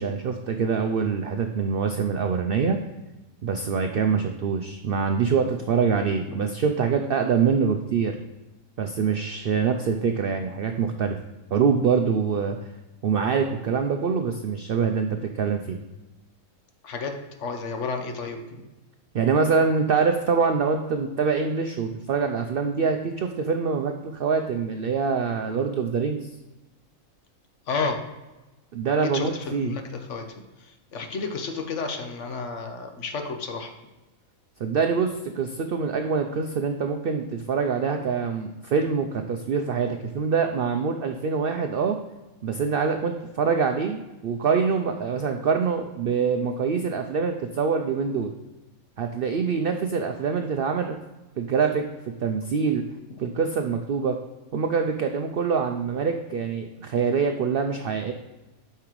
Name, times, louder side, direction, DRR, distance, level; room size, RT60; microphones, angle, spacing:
voice 1, 0.0-2.8 3.4-8.2 8.8-11.2 11.5-12.7 13.0-15.8 19.1-26.3 28.7-29.7 34.6-42.0 42.4-48.3 49.0-51.0 51.4-51.9 52.2-52.8 53.2-54.2 54.5-58.1, right 5 dB, 70° right, 5 dB, 0.5 m, -25 dB
voice 2, 16.8-18.6 27.7-28.0 29.0-33.7, left 4 dB, 60° left, 5 dB, 1.1 m, -32 dB
8.5 x 5.7 x 3.0 m, 1.1 s
omnidirectional pair, 1.5 m